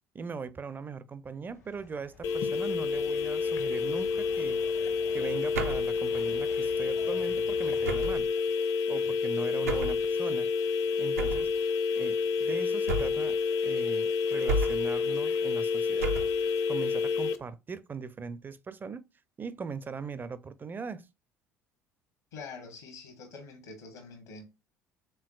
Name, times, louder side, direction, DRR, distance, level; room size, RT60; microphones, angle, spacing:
voice 1, 0.1-4.6 5.1-8.3 8.9-10.5 11.0-11.5 12.0-13.4 13.6-16.1 16.7-19.0 19.4-21.1, right 5 dB, 25° right, 0.4 m, -40 dB
sound 1, 1.4-7.9, left 3 dB, 85° left, 1.4 m, -50 dB
sound 2, 2.2-17.4, left 5 dB, 45° left, 0.6 m, -29 dB
sound 3, 5.5-6.0 7.8-8.3 9.7-10.0 11.2-11.5 12.9-13.3 14.5-15.0 16.0-16.4, right 2 dB, 80° right, 0.5 m, -32 dB
voice 2, 22.3-24.5, left 4 dB, 70° left, 1.1 m, -45 dB
4.5 x 3.6 x 2.3 m
figure-of-eight pair, 60°, 8 cm